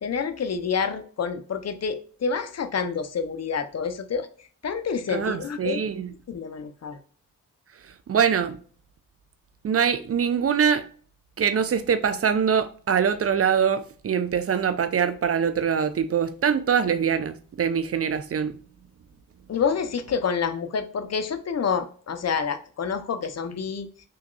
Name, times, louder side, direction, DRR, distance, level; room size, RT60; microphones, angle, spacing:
voice 1, 0.0-4.3 4.6-5.8 6.3-7.0 19.5-23.9, left 6 dB, 50° left, 0.5 m, -28 dB
voice 2, 5.1-6.1 7.8-8.6 9.6-10.9 11.4-18.6, right 7 dB, 45° right, 0.4 m, -23 dB
3.5 x 2.9 x 2.2 m
cardioid pair, 50°, 34 cm